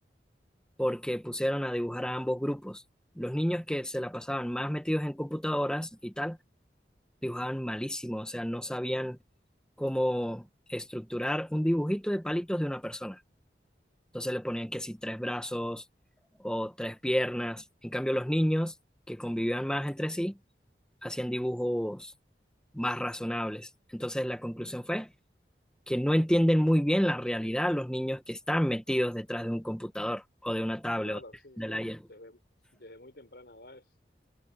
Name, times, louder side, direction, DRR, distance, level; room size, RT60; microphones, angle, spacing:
voice 1, 0.8-2.8 3.2-6.4 7.2-9.2 9.8-13.2 14.1-15.8 16.4-18.7 19.1-20.4 21.0-22.1 22.7-25.1 25.9-31.2 31.6-32.0, equal, 5° left, 1.3 m, -30 dB
voice 2, 31.0-32.4 32.7-33.9, left 1 dB, 70° left, 4.5 m, -50 dB
head